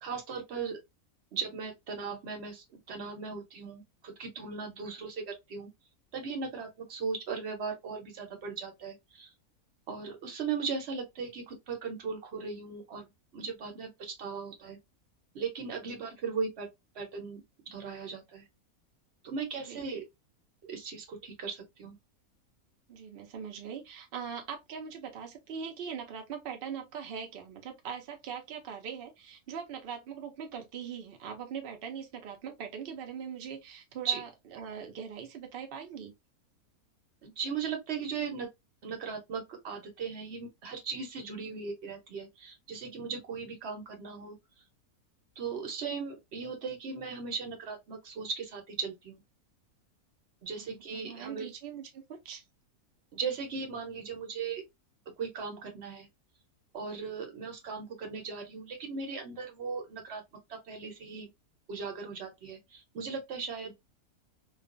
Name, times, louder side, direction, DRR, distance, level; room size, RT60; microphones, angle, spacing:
voice 1, 0.0-0.8 1.3-5.7 6.1-9.3 9.9-13.1 13.3-14.8 15.3-16.7 16.9-18.4 19.2-20.0 20.6-22.0 34.0-34.2 37.2-38.5 38.8-44.4 45.4-49.2 50.4-51.5 53.1-54.6 55.2-56.1 56.7-60.2 60.5-61.3 61.7-63.7, right 5 dB, 55° right, 0.9 m, -38 dB
voice 2, 22.9-36.1 50.6-52.4, right 7 dB, 75° right, 0.5 m, -41 dB
2.4 x 2.2 x 2.4 m
omnidirectional pair, 1.6 m